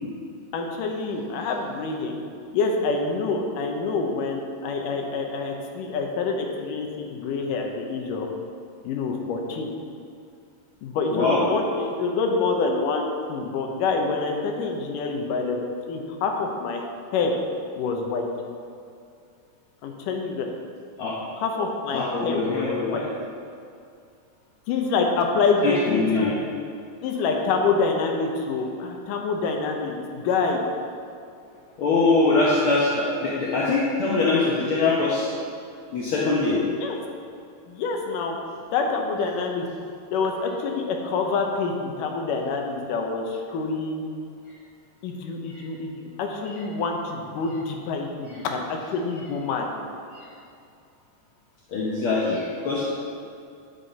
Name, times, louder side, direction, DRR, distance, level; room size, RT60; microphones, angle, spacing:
voice 1, 0.5-2.2 2.5-8.3 8.8-9.7 10.8-16.8 17.1-17.3 17.8-18.3 19.8-20.5 21.3-23.0 24.7-26.4 27.0-30.6 36.8-36.9 37.7-38.4 38.7-39.7 40.1-44.0 45.0-49.7, left 4 dB, 80° left, 2 dB, 2.5 m, -26 dB
voice 2, 11.1-11.4 21.0-21.2 21.9-23.1 25.6-26.3 31.8-35.3 35.9-36.8 45.5-45.6 50.1-50.2 51.7-52.9, left 3 dB, 65° left, -5 dB, 1.3 m, -23 dB
10.5 x 7.7 x 4.1 m, 2.4 s
omnidirectional pair, 3.7 m